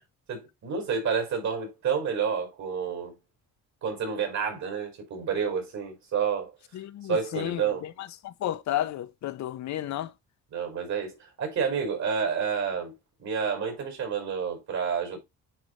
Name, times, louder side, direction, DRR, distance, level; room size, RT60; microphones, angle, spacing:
voice 1, 0.3-3.2 3.8-6.5 7.1-7.9 8.7-8.8 9.8-10.0 10.5-12.9 13.2-15.2, right 6 dB, 65° right, 5.1 m, -29 dB
voice 2, 6.7-7.9 8.2-10.1, left 12 dB, 65° left, 0.7 m, -32 dB
9.9 x 4.0 x 3.1 m
cardioid pair, 90°, 30 cm